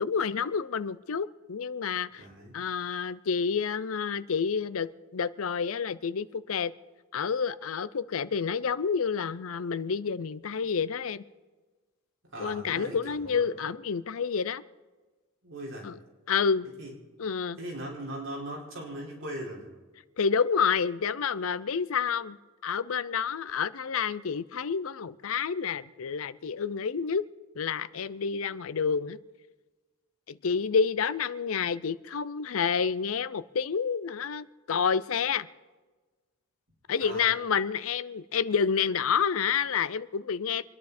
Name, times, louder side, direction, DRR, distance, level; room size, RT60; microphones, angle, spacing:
voice 1, 0.0-2.2 2.5-6.7 7.1-11.2 12.4-14.6 15.8-15.9 16.3-16.7 17.2-17.6 20.2-22.4 22.6-27.2 27.6-29.2 30.3-35.5 36.9-40.7, left 6 dB, 75° left, 16 dB, 0.5 m, -29 dB
voice 2, 2.2-2.6 12.3-13.5 15.4-15.9 16.8-16.9 17.6-19.7 37.0-37.3, right 1 dB, 65° right, -3 dB, 4.9 m, -39 dB
26.5 x 10.5 x 4.3 m, 1.3 s
head